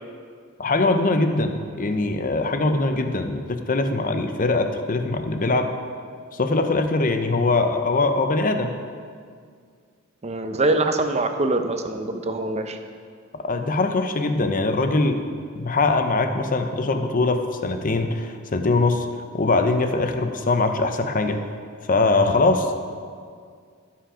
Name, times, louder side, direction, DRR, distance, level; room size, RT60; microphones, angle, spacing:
voice 1, 0.6-5.7 6.3-8.7 13.4-15.2 15.6-19.1 19.3-21.4 21.9-22.8, left 3 dB, 40° left, 7 dB, 0.8 m, -22 dB
voice 2, 10.2-12.8, right 2 dB, 30° right, 7 dB, 0.7 m, -24 dB
17.0 x 5.8 x 5.0 m, 2.1 s
head